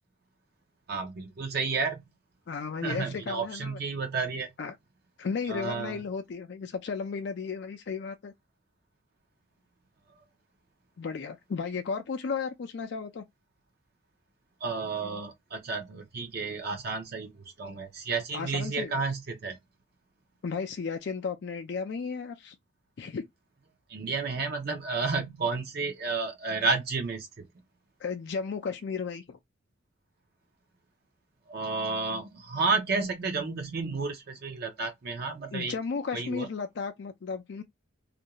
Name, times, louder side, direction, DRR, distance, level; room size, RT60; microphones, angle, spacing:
voice 1, 0.9-2.0 2.8-4.5 5.5-6.0 14.6-19.6 23.9-27.5 31.5-35.7 36.1-36.5, right 4 dB, 50° right, 0.5 m, -31 dB
voice 2, 2.5-3.8 4.6-4.7 5.2-8.3 11.0-13.2 18.3-19.0 20.4-22.6 23.0-23.2 28.0-29.4 35.5-37.6, left 5 dB, 55° left, 0.4 m, -34 dB
2.4 x 2.2 x 2.8 m
head